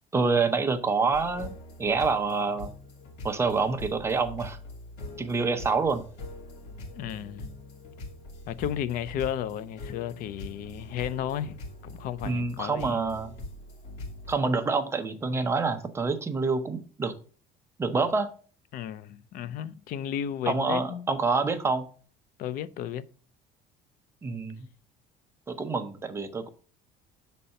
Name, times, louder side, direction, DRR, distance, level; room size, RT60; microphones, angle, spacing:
voice 1, 0.1-1.5 1.8-2.7 3.2-4.6 5.2-6.0 12.2-13.3 14.3-17.1 17.8-18.3 20.5-21.8 24.2-24.7 25.5-26.5, right 4 dB, 15° right, 0.8 m, -27 dB
sound 1, 1.1-14.4, left 1 dB, 80° left, 2.6 m, -43 dB
voice 2, 7.0-7.5 8.5-11.6 11.8-13.0 18.7-21.1 22.4-23.0, left 10 dB, 55° left, 0.6 m, -33 dB
6.7 x 4.2 x 6.4 m
cardioid pair, 155°, 17 cm